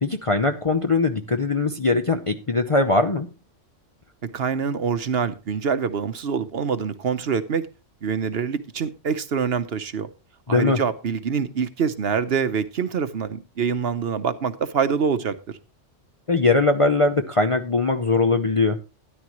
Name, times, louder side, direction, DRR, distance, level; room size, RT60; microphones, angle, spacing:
voice 1, 0.0-3.3 10.5-10.8 16.3-18.8, left 3 dB, 30° left, 0.7 m, -21 dB
voice 2, 4.2-7.7 8.0-10.1 10.5-15.6, right 6 dB, 55° right, 1.0 m, -25 dB
13.0 x 10.5 x 3.0 m
omnidirectional pair, 1.3 m